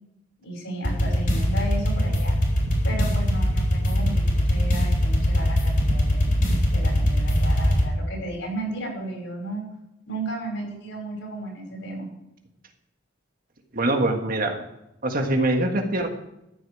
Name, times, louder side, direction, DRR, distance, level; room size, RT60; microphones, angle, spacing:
voice 1, 0.4-2.3 2.8-6.3 6.7-9.7 10.1-12.1, right 1 dB, 75° left, 0 dB, 5.7 m, -34 dB
sound 1, 0.8-7.8, equal, 45° left, 3.7 m, -22 dB
sound 2, 1.9-7.4, right 1 dB, 75° right, 1.5 m, -37 dB
voice 2, 13.7-14.6 15.0-16.1, right 1 dB, 50° right, 4 dB, 1.6 m, -23 dB
14.0 x 9.1 x 4.9 m, 0.86 s
head